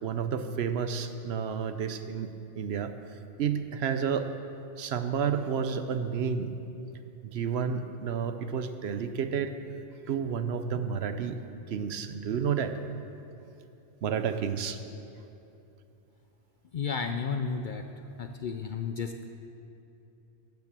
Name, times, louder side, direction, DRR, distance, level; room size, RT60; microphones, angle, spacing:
voice 1, 0.0-2.3 2.6-2.9 3.4-4.3 4.8-6.5 7.2-9.5 10.1-11.4 11.7-13.0 14.0-14.8, right 7 dB, 65° right, 9 dB, 0.9 m, -30 dB
voice 2, 16.7-17.8 18.2-19.3, left 5 dB, 55° left, 6 dB, 0.6 m, -32 dB
12.0 x 7.2 x 7.6 m, 2.8 s
omnidirectional pair, 1.2 m